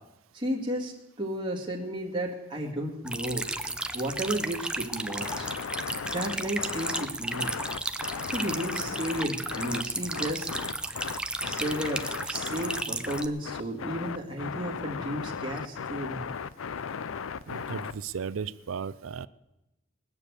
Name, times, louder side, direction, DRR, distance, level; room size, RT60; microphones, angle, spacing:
voice 1, 0.3-0.9 1.2-3.4 3.9-5.5 6.1-7.5 8.3-10.5 11.4-16.3, right 1 dB, 25° right, -2 dB, 2.1 m, -33 dB
sound 1, 3.1-13.3, right 2 dB, 5° right, 0.6 m, -34 dB
sound 2, 5.2-18.2, left 6 dB, 85° left, 0.5 m, -36 dB
voice 2, 17.5-19.3, right 6 dB, 85° right, 16 dB, 0.5 m, -35 dB
20.0 x 7.0 x 8.2 m, 0.94 s
head